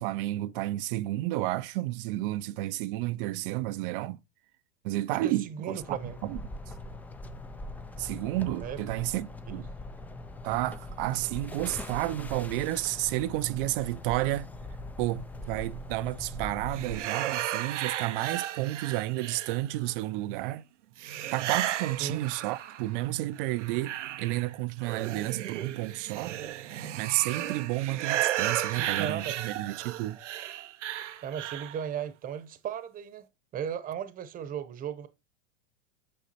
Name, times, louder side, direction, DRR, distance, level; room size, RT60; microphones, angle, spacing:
voice 1, 0.0-4.2 4.8-6.4 8.0-9.7 10.4-14.5 15.0-20.6 21.3-26.4 26.9-30.2, right 17 dB, 50° right, 0.6 m, -31 dB
voice 2, 5.1-6.2 8.6-8.8 9.5-9.6 22.0-22.2 28.7-29.5 31.2-33.3 33.5-35.1, right 8 dB, 25° right, 1.0 m, -36 dB
sound 1, 5.8-17.0, left 2 dB, 5° left, 0.4 m, -41 dB
sound 2, 16.7-19.9 21.0-23.0 23.4-31.8, right 12 dB, 90° right, 0.9 m, -34 dB
8.6 x 5.7 x 4.2 m
supercardioid pair, 135°, 35 cm